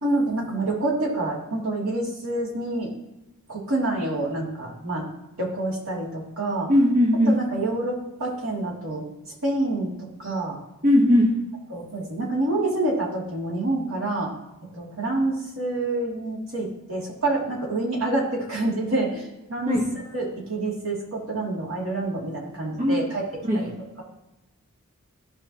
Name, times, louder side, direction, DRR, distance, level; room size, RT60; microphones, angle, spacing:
voice 1, 0.0-2.9 3.5-5.1 5.4-6.7 7.3-9.0 9.4-10.6 11.7-14.3 14.7-23.2 23.5-23.7, right 2 dB, 65° right, -4 dB, 2.9 m, -27 dB
voice 2, 6.7-7.4 10.8-11.4 19.7-19.8 22.8-23.0 23.4-23.7, left 1 dB, 35° right, -4 dB, 1.4 m, -19 dB
13.5 x 5.4 x 3.1 m, 0.99 s
head